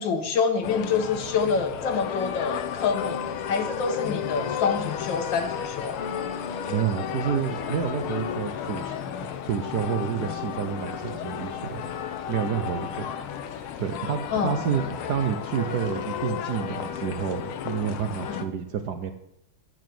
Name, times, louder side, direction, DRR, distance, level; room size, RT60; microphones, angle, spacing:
voice 1, 0.0-3.2 3.5-6.0 14.3-14.6 18.3-18.4, left 5 dB, 65° left, 7 dB, 1.8 m, -26 dB
sound 1, 0.6-18.4, left 8 dB, 90° left, 1.7 m, -33 dB
voice 2, 6.7-8.9 9.4-11.8 12.3-13.1 13.8-19.1, right 8 dB, 60° right, 8 dB, 1.2 m, -29 dB
10.0 x 7.1 x 7.7 m, 0.81 s
omnidirectional pair, 2.3 m